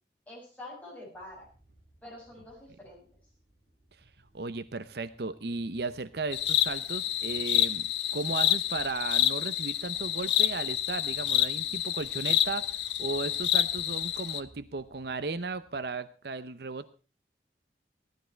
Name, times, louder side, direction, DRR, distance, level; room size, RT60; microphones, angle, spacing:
voice 1, 0.3-1.5 2.0-3.1, left 1 dB, 10° left, -4 dB, 6.4 m, -46 dB
sound 1, 1.1-15.9, right 1 dB, 50° right, 6.1 m, -61 dB
voice 2, 4.3-7.9 8.1-12.7 13.0-16.9, right 3 dB, 65° right, 13 dB, 0.7 m, -35 dB
sound 2, 6.3-14.4, left 11 dB, 90° left, 0.9 m, -28 dB
16.5 x 12.0 x 4.5 m, 0.35 s
head